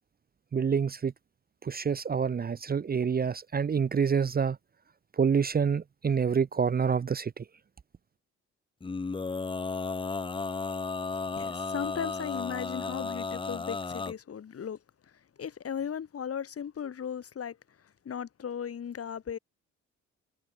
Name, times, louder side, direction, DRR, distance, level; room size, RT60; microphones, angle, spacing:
voice 1, 0.5-1.1 1.6-4.6 5.2-7.4, right 6 dB, 30° right, 0.7 m, -27 dB
Male singing, 8.8-14.1, left 4 dB, 15° left, 0.7 m, -34 dB
voice 2, 11.3-19.4, left 8 dB, 50° left, 3.3 m, -37 dB
cardioid pair, 90°, 30 cm